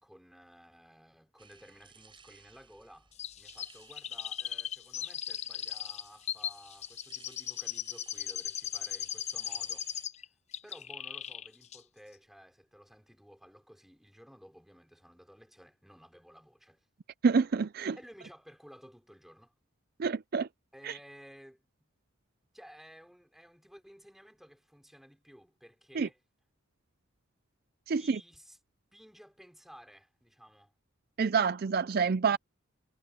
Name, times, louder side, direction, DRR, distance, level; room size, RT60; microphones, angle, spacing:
voice 1, 0.0-9.9 10.2-10.3 10.6-16.9 18.0-19.5 20.7-21.6 22.5-26.2 27.9-28.6 28.9-30.7, equal, ahead, 4.3 m, -55 dB
sound 1, 1.4-10.1, right 6 dB, 25° right, 7.9 m, -59 dB
Chirp tweet, 3.2-10.2 10.5-11.5 11.7-11.8, left 10 dB, 30° left, 0.5 m, -38 dB
voice 2, 17.2-18.0 20.0-20.5 20.8-20.9 26.0-26.1 27.9-28.2 31.2-32.4, right 5 dB, 45° right, 0.4 m, -27 dB
head